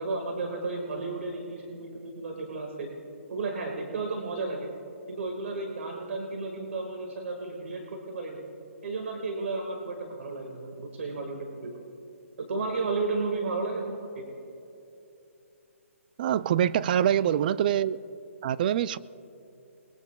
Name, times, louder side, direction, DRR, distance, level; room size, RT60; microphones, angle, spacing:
voice 1, 0.0-2.9 3.3-4.7 5.1-8.4 8.8-11.8 12.4-14.3 16.8-17.2, right 3 dB, 65° right, 2 dB, 1.8 m, -33 dB
voice 2, 16.2-18.0 18.4-19.0, right 10 dB, 40° right, 18 dB, 0.3 m, -24 dB
28.5 x 20.0 x 2.3 m, 2.8 s
hypercardioid pair, 155°, 8 cm